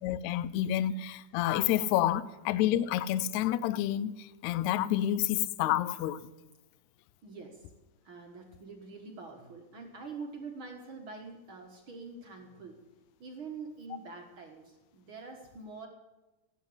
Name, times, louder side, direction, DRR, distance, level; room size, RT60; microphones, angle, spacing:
voice 1, 0.0-6.2, left 12 dB, 85° left, 1.6 m, -29 dB
voice 2, 7.2-7.7 8.0-12.8 13.2-15.9, right 4 dB, 50° right, 1.7 m, -45 dB
16.5 x 8.2 x 7.9 m
omnidirectional pair, 4.0 m